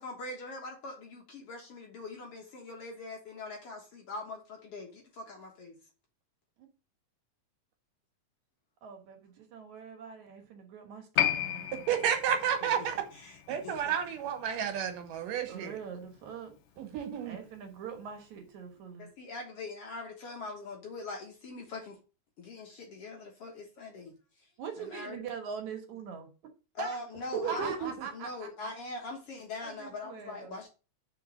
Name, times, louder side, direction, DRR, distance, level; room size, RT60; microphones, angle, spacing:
voice 1, 0.0-5.8 12.6-14.0 19.0-22.0 22.4-24.5 24.8-25.2 26.7-30.7, left 2 dB, 55° left, 2.0 m, -42 dB
voice 2, 8.8-11.7 15.5-16.6 17.1-19.1 24.6-26.3 26.8-27.0 27.5-28.7 29.6-30.6, right 6 dB, 65° right, 2.5 m, -42 dB
Piano, 11.2-18.1 18.4-18.5, left 11 dB, 80° left, 1.4 m, -36 dB
voice 3, 11.9-13.0 13.5-15.8 16.8-17.4 27.4-27.9, right 8 dB, 85° right, 2.8 m, -31 dB
5.3 x 4.8 x 6.1 m
omnidirectional pair, 3.7 m